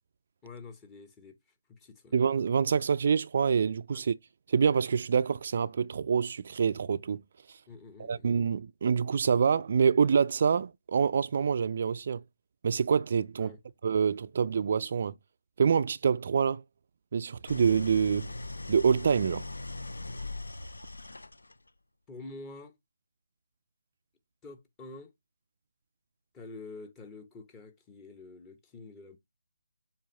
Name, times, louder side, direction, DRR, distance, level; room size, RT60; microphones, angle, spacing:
voice 1, 0.4-1.4 1.7-2.1 3.9-4.0 7.7-8.3 13.4-13.6 22.1-22.7 24.4-25.1 26.3-29.2, left 3 dB, 15° left, 0.8 m, -47 dB
voice 2, 2.1-4.1 4.5-7.2 7.5-7.6 8.0-12.2 12.6-13.5 13.8-15.1 15.6-16.6 17.1-18.3 18.7-19.5, right 6 dB, 45° right, 0.3 m, -26 dB
Idling, 17.5-21.7, left 2 dB, 80° left, 0.5 m, -40 dB
7.2 x 2.5 x 5.2 m
figure-of-eight pair, 155°, 0 cm